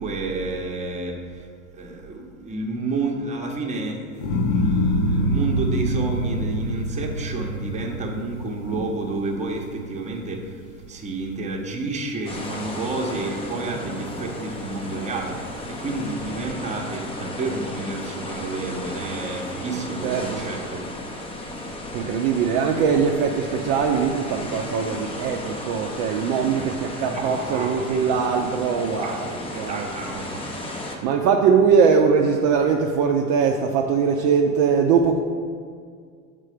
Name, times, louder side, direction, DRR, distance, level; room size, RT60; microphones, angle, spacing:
voice 1, 0.0-1.4 1.7-10.6 10.9-15.4 15.7-20.9 26.3-26.8 27.1-28.1 29.0-29.2 29.5-31.0, right 3 dB, 15° right, 0 dB, 0.9 m, -30 dB
sound 1, 4.2-10.5 11.0-11.6, equal, 60° left, 0.9 m, -25 dB
sound 2, 12.3-31.0, left 1 dB, 15° left, 0.6 m, -34 dB
voice 2, 20.0-20.4 21.9-29.9 31.0-35.2, right 6 dB, 45° right, 1 dB, 0.5 m, -21 dB
6.5 x 3.7 x 4.9 m, 2.1 s
hypercardioid pair, 100°, 44 cm